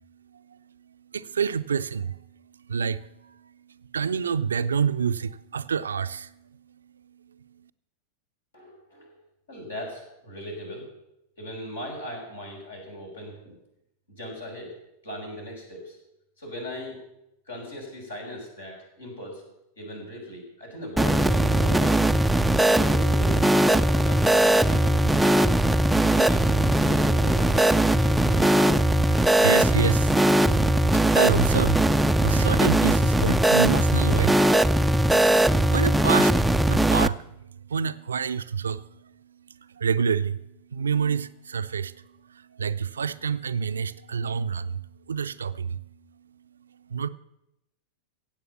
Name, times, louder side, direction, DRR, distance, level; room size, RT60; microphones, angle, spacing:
voice 1, 1.1-2.2 2.7-3.0 3.9-6.3 29.1-30.2 31.1-31.8 32.2-34.6 35.7-36.3 36.7-37.2 37.7-38.8 39.8-40.4 40.7-41.9 42.6-44.8 45.1-45.8 46.9-47.1, right 6 dB, 70° right, 0.5 m, -27 dB
voice 2, 8.5-9.2 9.5-10.9 11.4-13.6 14.1-14.7 15.0-16.0 16.4-17.0 17.5-19.4 19.8-22.1 22.6-25.5 26.0-28.5, left 1 dB, 75° left, 5.8 m, -39 dB
sound 1, 21.0-37.1, right 1 dB, 5° right, 0.4 m, -20 dB
16.0 x 8.4 x 7.1 m
figure-of-eight pair, 90°, 0 cm